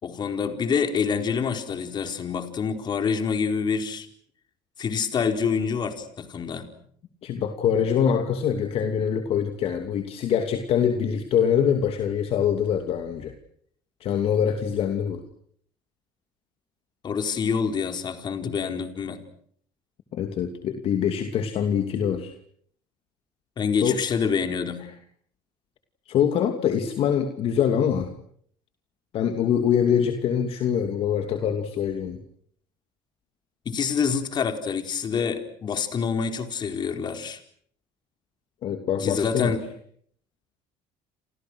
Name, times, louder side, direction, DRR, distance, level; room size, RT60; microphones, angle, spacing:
voice 1, 0.0-4.1 4.8-6.7 17.0-19.2 23.6-24.8 33.6-37.4 39.0-39.6, left 6 dB, 40° left, 7 dB, 4.4 m, -26 dB
voice 2, 7.2-13.4 14.0-15.2 20.1-22.3 23.8-24.0 26.1-28.1 29.1-32.2 38.6-39.6, left 8 dB, 55° left, 6 dB, 2.7 m, -24 dB
29.5 x 27.5 x 6.4 m, 0.62 s
cardioid pair, 110°, 12 cm